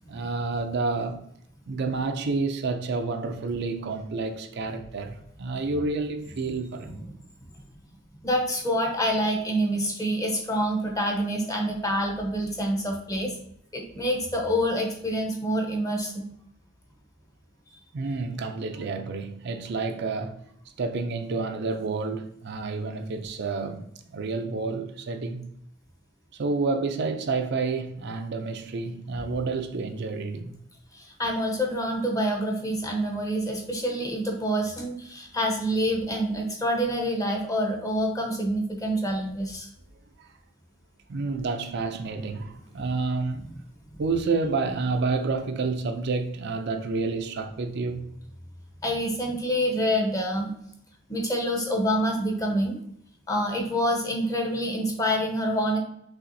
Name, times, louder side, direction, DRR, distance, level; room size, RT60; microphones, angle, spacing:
voice 1, 0.1-1.2 1.7-7.0 17.9-20.4 20.8-25.5 26.4-30.5 40.2-40.3 41.1-43.4 44.0-48.1, right 3 dB, 55° right, 0.4 m, -29 dB
voice 2, 8.2-13.3 13.7-16.3 30.9-39.7 43.4-43.6 48.8-50.5 51.1-52.8 53.3-55.8, equal, 15° left, 0.8 m, -27 dB
5.7 x 3.4 x 2.6 m
head